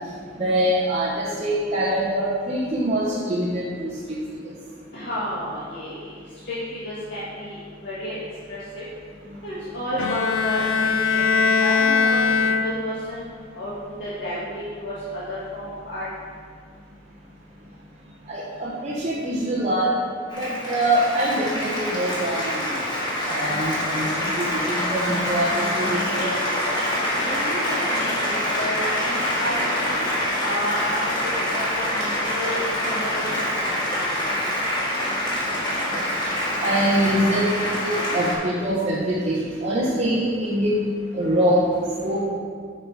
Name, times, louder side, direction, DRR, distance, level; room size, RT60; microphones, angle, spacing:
voice 1, 0.4-3.9 18.3-19.9 20.4-22.8 23.2-26.3 35.5-35.6 35.9-36.0 36.6-40.8 41.1-41.6 42.0-42.2, right 1 dB, 35° right, -7 dB, 1.0 m, -24 dB
voice 2, 4.9-6.1 6.4-8.2 8.5-8.8 9.4-11.2 11.5-13.2 13.5-16.0 27.2-30.1 30.4-33.3 33.6-34.0, equal, 65° left, -10 dB, 1.6 m, -31 dB
Bowed string instrument, 10.0-13.2, left 5 dB, 80° left, 0.5 m, -21 dB
Applause, 20.3-38.4, left 1 dB, 25° left, 1.7 m, -25 dB
7.2 x 5.6 x 4.7 m, 2.1 s
head